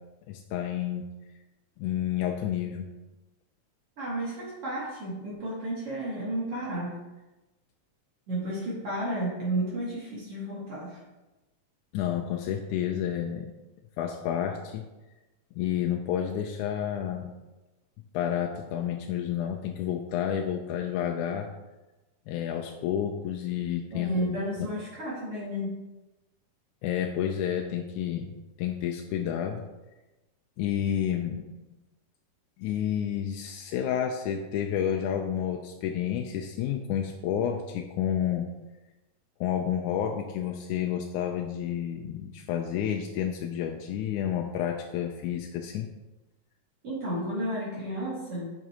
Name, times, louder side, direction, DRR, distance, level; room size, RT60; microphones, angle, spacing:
voice 1, 0.3-1.1 1.8-2.9 11.9-13.5 14.0-14.9 15.6-17.3 18.1-21.5 22.3-24.7 26.8-28.3 28.6-29.7 30.6-31.5 32.6-38.5 39.4-45.9, left 9 dB, 80° left, 2 dB, 2.0 m, -30 dB
voice 2, 4.0-7.0 8.3-11.0 23.9-25.8 46.8-48.5, right 1 dB, 50° right, -7 dB, 2.8 m, -32 dB
10.5 x 6.0 x 2.9 m, 1.1 s
omnidirectional pair, 3.5 m